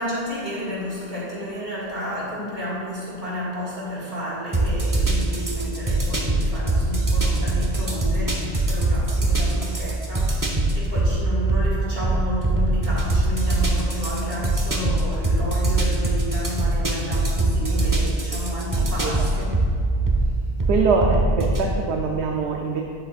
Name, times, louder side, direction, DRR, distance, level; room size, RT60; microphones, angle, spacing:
voice 1, 0.0-19.6, equal, 65° right, -6 dB, 2.4 m, -31 dB
sound 1, 4.5-21.7, right 2 dB, 20° right, 0.8 m, -22 dB
voice 2, 17.6-18.4 18.8-19.1 20.7-22.8, right 4 dB, 85° right, 1 dB, 0.9 m, -24 dB
9.2 x 8.0 x 2.4 m, 2.3 s
omnidirectional pair, 1.1 m